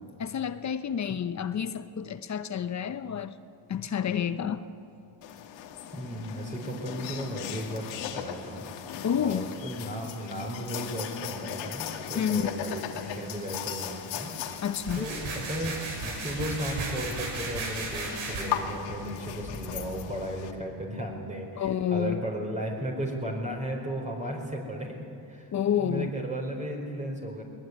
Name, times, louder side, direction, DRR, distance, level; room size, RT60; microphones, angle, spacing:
voice 1, 0.2-3.3 3.7-4.7 9.0-9.5 12.1-12.5 14.6-15.1 21.6-22.2 25.5-26.1, left 8 dB, 40° left, 12 dB, 1.0 m, -29 dB
sound 1, 5.2-20.5, left 9 dB, 80° left, 2.4 m, -38 dB
voice 2, 5.9-8.6 8.9-14.3 15.0-15.7 16.0-25.0 25.3-25.5 25.8-27.4, right 1 dB, 15° right, -1 dB, 4.6 m, -35 dB
sound 2, 14.8-18.4, right 3 dB, 85° right, 6.2 m, -35 dB
21.5 x 21.0 x 9.5 m, 2.5 s
cardioid pair, 100°, 44 cm